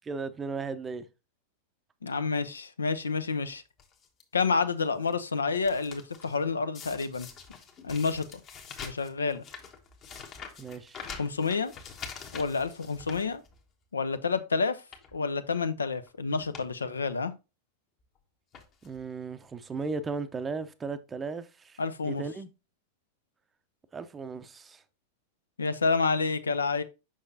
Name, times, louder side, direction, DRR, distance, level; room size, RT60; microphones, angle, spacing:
voice 1, 0.0-1.1 10.6-11.0 18.8-22.5 23.9-24.8, right 4 dB, 15° right, 0.6 m, -36 dB
voice 2, 2.0-3.6 4.3-7.3 7.8-8.4 8.8-9.4 11.2-11.7 12.3-13.4 13.9-14.8 15.1-17.3 21.8-22.2 25.6-26.8, left 4 dB, 75° left, 0.5 m, -29 dB
sound 1, 3.8-4.2 4.8-5.1 5.4-6.4 6.7-13.8 14.2-14.4 14.8-15.2 16.0-16.1 16.3-16.7 17.0-17.1 18.0-18.2 18.5-19.0 19.8-19.9 20.1-20.2, left 6 dB, 30° left, 1.1 m, -45 dB
6.4 x 5.8 x 2.7 m
figure-of-eight pair, 90°, 0 cm